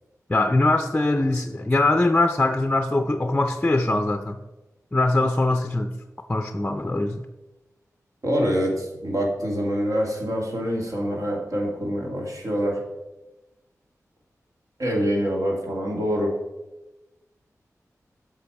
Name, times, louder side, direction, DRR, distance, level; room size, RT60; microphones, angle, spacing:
voice 1, 0.3-4.4 4.9-5.9 6.3-7.2, left 2 dB, 20° left, 7 dB, 0.5 m, -22 dB
voice 2, 8.2-12.8 14.8-16.3, equal, 65° right, 0 dB, 2.1 m, -25 dB
8.2 x 6.0 x 4.7 m, 1.0 s
wide cardioid pair, 100°, 6 cm